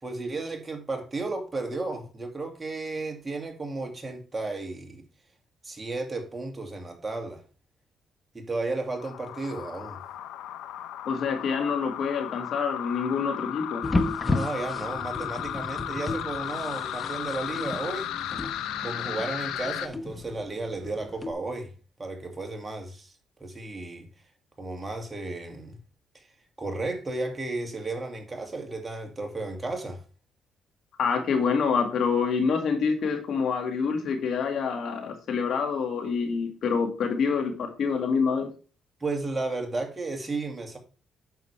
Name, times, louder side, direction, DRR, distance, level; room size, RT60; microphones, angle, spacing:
voice 1, 0.0-5.0 5.6-7.4 8.3-10.0 14.2-18.1 18.8-21.7 22.0-23.1 23.4-24.1 24.6-25.8 26.1-26.2 26.6-30.0 39.0-40.8, right 2 dB, 20° right, 2.3 m, -33 dB
sound 1, 9.0-19.9, left 11 dB, 90° left, 0.7 m, -35 dB
voice 2, 11.1-13.8 31.0-38.5, left 5 dB, 65° left, 2.0 m, -26 dB
sound 2, 13.8-21.3, left 2 dB, 20° left, 1.0 m, -33 dB
9.2 x 6.6 x 3.3 m
cardioid pair, 90°, 0 cm